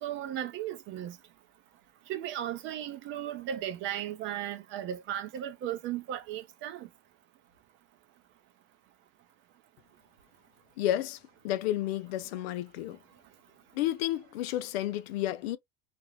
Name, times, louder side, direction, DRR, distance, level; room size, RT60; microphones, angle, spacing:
voice 1, 0.0-1.2 2.1-6.9, right 11 dB, 40° right, 0.5 m, -36 dB
voice 2, 10.8-11.2 11.4-13.0 13.7-15.6, left 13 dB, 80° left, 0.5 m, -31 dB
2.5 x 2.0 x 3.1 m
supercardioid pair, 130°, 31 cm